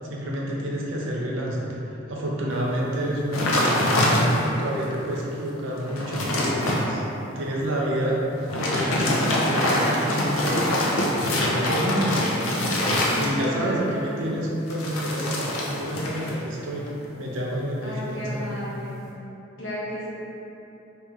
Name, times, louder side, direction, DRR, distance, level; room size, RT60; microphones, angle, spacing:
voice 1, 0.0-4.3 4.6-7.0 7.3-8.2 8.6-10.8 11.2-12.2 13.2-16.8 17.2-18.5, right 1 dB, 70° right, -4 dB, 0.5 m, -29 dB
sound 1, 3.3-4.6 5.2-5.3 5.7-6.8 8.4-13.7 14.7-16.4 16.6-17.0, left 1 dB, 85° left, 0.6 m, -24 dB
voice 2, 13.1-14.4 17.8-18.9 19.6-20.1, equal, 70° left, -8 dB, 1.0 m, -33 dB
3.4 x 3.2 x 3.0 m, 3.0 s
head